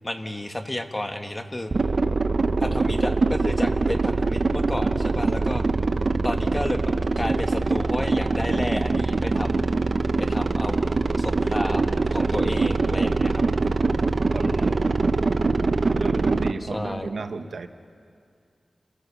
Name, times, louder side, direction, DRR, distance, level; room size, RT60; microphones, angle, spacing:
voice 1, 0.0-1.7 2.6-5.6 6.2-9.7 10.2-10.9 11.2-13.4 14.4-15.0 16.6-17.1, left 1 dB, 25° left, 6 dB, 1.5 m, -32 dB
sound 1, 1.7-16.5, right 3 dB, 55° right, 0.8 m, -23 dB
voice 2, 15.9-17.7, right 4 dB, 80° right, 8 dB, 1.1 m, -33 dB
30.0 x 15.0 x 7.0 m, 2.3 s
wide cardioid pair, 75°, 0 cm